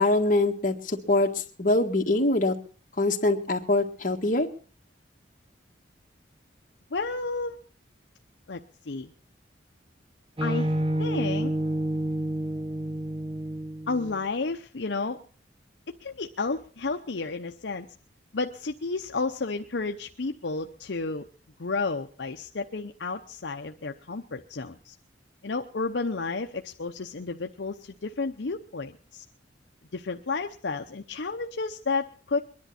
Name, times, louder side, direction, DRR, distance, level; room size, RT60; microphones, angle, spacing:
voice 1, 0.0-1.3 1.6-2.6 3.0-4.5, left 2 dB, 45° left, 3 dB, 1.7 m, -23 dB
voice 2, 6.9-7.6 8.5-9.1 10.4-10.7 11.0-11.5 13.9-15.2 16.0-17.9 18.3-21.3 21.6-24.9 25.4-29.2 29.9-32.4, left 3 dB, 70° left, 5 dB, 0.7 m, -31 dB
sound 1, 10.4-14.2, right 1 dB, 30° right, 0.9 m, -29 dB
23.0 x 11.0 x 4.3 m, 0.39 s
head